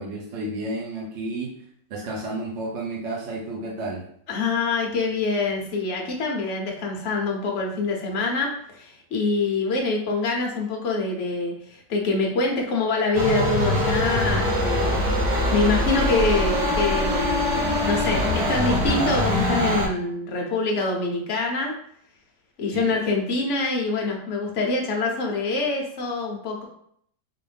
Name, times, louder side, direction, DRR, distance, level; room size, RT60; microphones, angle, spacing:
voice 1, 0.0-1.6 1.9-4.1 22.7-22.9, right 2 dB, 55° right, -2 dB, 0.8 m, -31 dB
voice 2, 4.3-21.7 22.6-26.6, left 3 dB, 50° left, 0 dB, 1.0 m, -25 dB
sound 1, 13.1-19.9, left 1 dB, 75° right, 1.8 m, -23 dB
3.9 x 2.6 x 3.3 m, 0.67 s
omnidirectional pair, 1.9 m